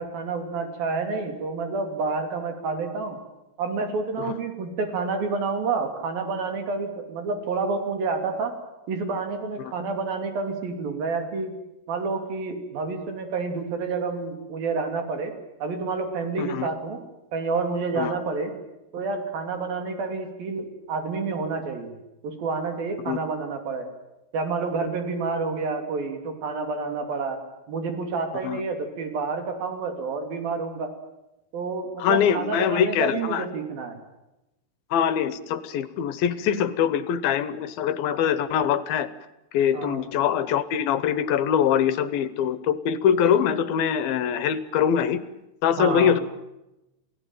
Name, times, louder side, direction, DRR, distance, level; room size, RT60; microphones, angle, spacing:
voice 1, 0.0-3.2 3.6-8.5 8.9-11.5 11.9-15.3 15.6-17.0 17.3-18.5 18.9-21.9 22.2-23.9 24.3-27.4 27.7-30.9 31.5-34.0 39.7-40.0 45.8-46.1, right 4 dB, 70° right, 6 dB, 4.7 m, -29 dB
voice 2, 32.0-33.5 34.9-39.1 39.5-45.2 45.6-46.2, left 8 dB, 75° left, 15 dB, 2.7 m, -23 dB
28.5 x 17.5 x 9.1 m, 0.94 s
omnidirectional pair, 4.4 m